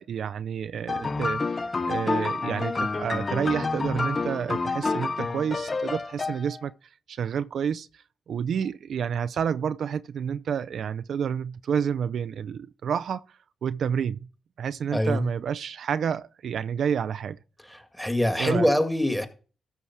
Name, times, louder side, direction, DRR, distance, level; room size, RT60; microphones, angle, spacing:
voice 1, 0.0-1.6 1.9-6.7 7.1-13.2 13.6-14.2 14.6-17.4 18.4-18.7, right 7 dB, 70° right, 0.5 m, -29 dB
sound 1, 0.9-6.7, left 3 dB, 35° left, 0.8 m, -29 dB
voice 2, 14.9-15.2 17.7-19.3, left 1 dB, 5° left, 2.0 m, -24 dB
13.5 x 4.8 x 5.9 m
cardioid pair, 60°, 0 cm